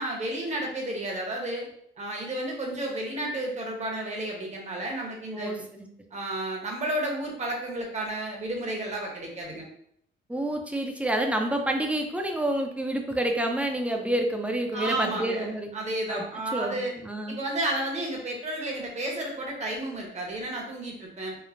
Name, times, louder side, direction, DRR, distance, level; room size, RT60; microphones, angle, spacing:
voice 1, 0.0-1.7 2.0-5.6 6.1-9.7 14.7-16.9 17.3-21.4, right 1 dB, 35° right, 0 dB, 0.8 m, -32 dB
voice 2, 5.3-5.9 10.3-15.7 16.1-16.2 16.5-17.4, right 1 dB, 5° right, 3 dB, 0.4 m, -28 dB
3.0 x 2.0 x 2.5 m, 0.68 s
cardioid pair, 90°, 20 cm